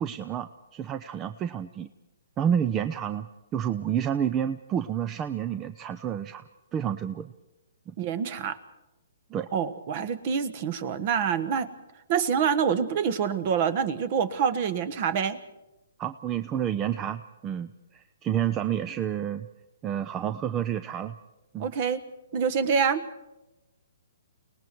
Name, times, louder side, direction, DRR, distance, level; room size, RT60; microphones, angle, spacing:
voice 1, 0.0-1.9 2.4-3.3 3.5-6.4 6.7-7.3 7.9-8.0 9.3-9.5 16.0-19.5 19.8-21.1 21.5-21.7, right 9 dB, 20° right, 11 dB, 0.6 m, -29 dB
voice 2, 8.0-8.6 9.5-11.7 12.1-15.4 21.6-22.0 22.3-23.0, right 7 dB, 45° right, 14 dB, 1.3 m, -26 dB
29.5 x 19.0 x 4.6 m, 0.97 s
hypercardioid pair, 135°, 0 cm